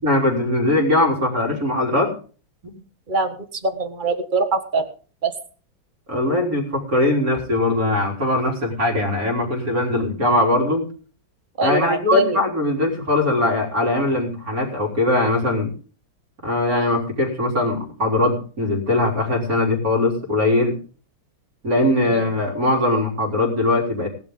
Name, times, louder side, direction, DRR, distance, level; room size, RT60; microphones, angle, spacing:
voice 1, 0.0-2.2 2.6-2.8 6.1-10.9 11.6-15.7 16.4-20.8 21.6-24.1, left 2 dB, 45° right, 0 dB, 4.2 m, -21 dB
voice 2, 3.6-4.9 5.2-5.3 11.6-12.4 22.1-22.3, right 2 dB, 25° right, 7 dB, 1.5 m, -22 dB
18.5 x 11.5 x 3.8 m, 0.40 s
omnidirectional pair, 2.0 m